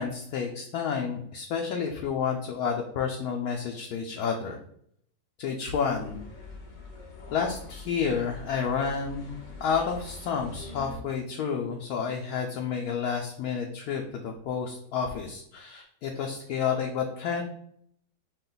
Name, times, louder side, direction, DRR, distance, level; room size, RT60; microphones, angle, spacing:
voice 1, 0.0-4.6 5.4-6.2 7.3-9.3 9.6-17.4, left 6 dB, 70° left, 1 dB, 1.0 m, -30 dB
sound 1, 5.9-11.0, left 3 dB, 50° left, 0.5 m, -44 dB
5.3 x 2.4 x 3.8 m, 0.67 s
omnidirectional pair, 1.8 m